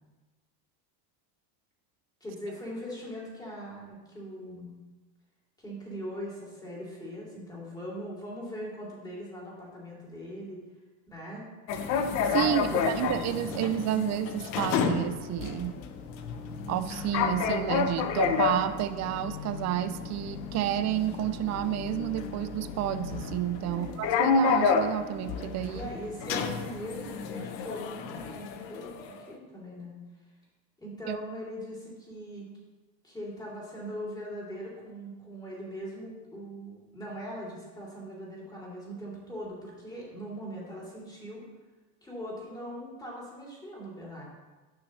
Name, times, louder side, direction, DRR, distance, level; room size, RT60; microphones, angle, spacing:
voice 1, 2.2-4.7 5.6-10.6 11.1-11.5 12.5-13.7 23.7-24.0 25.7-30.0 30.8-32.5 33.0-41.4 42.0-44.2, equal, 10° left, -5 dB, 3.0 m, -41 dB
sound 1, 11.7-29.2, left 5 dB, 85° left, 0.9 m, -30 dB
voice 2, 12.3-15.8 16.7-25.9 31.1-31.2, right 12 dB, 35° right, 12 dB, 0.4 m, -30 dB
12.0 x 5.8 x 3.2 m, 1.2 s
supercardioid pair, 115°, 50 cm